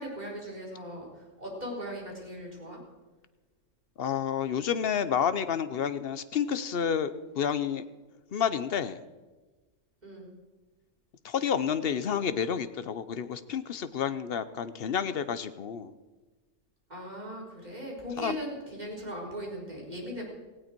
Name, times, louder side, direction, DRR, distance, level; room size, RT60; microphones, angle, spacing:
voice 1, 0.0-2.8 5.1-5.2 10.0-10.3 16.9-20.2, equal, 35° right, -3 dB, 4.3 m, -39 dB
voice 2, 4.0-7.8 8.3-9.0 11.2-15.9 18.2-18.4, left 8 dB, 55° left, 13 dB, 0.9 m, -30 dB
17.5 x 16.0 x 4.5 m, 1.2 s
omnidirectional pair, 1.3 m